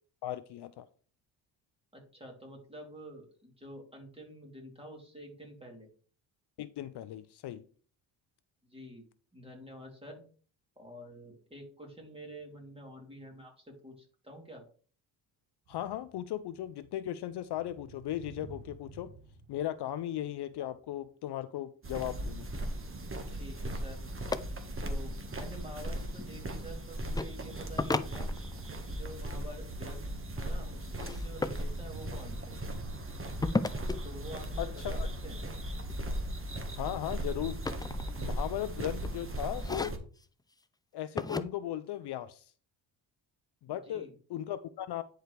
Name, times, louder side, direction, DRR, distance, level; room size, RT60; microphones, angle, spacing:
voice 1, 0.2-0.9 6.6-7.6 15.7-19.1 19.5-22.5 34.6-35.1 36.8-37.6 38.2-39.9 40.9-42.5 43.6-45.0, left 12 dB, 55° left, 0.6 m, -37 dB
voice 2, 1.9-5.9 8.6-9.0 9.3-10.2 10.8-14.6 23.3-24.0 24.8-28.3 28.9-30.1 30.4-32.6 34.0-35.0 35.2-35.4 43.7-44.1, equal, 10° right, 3.2 m, -48 dB
sound 1, 15.7-21.0 23.7-24.2 31.4-35.0, right 4 dB, 85° right, 1.3 m, -52 dB
sound 2, 21.8-40.0, right 1 dB, 25° right, 1.6 m, -38 dB
sound 3, 24.3-24.4 25.7-26.3 27.1-27.3 27.8-28.8 31.0-31.6 33.4-34.0 35.9-36.2 36.6-38.5 38.9-39.2 39.6-40.3 41.2-41.4, left 3 dB, 10° left, 0.4 m, -34 dB
10.0 x 4.7 x 3.3 m
supercardioid pair, 70°, 48 cm